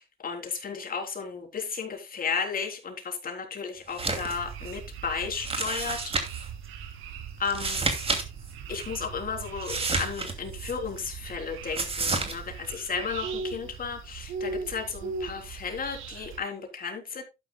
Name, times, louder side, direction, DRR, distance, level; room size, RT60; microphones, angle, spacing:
voice 1, 0.0-6.1 7.4-8.2 8.7-17.2, left 5 dB, 45° left, 3.6 m, -34 dB
sound 1, 3.9-4.4 4.7-4.8 5.4-6.5 7.4-8.2 8.5-8.6 9.6-10.7 11.7-12.3, right 3 dB, 30° right, 2.6 m, -30 dB
sound 2, 4.0-16.4, right 5 dB, 90° right, 2.2 m, -39 dB
12.0 x 10.0 x 2.3 m
cardioid pair, 90°, 20 cm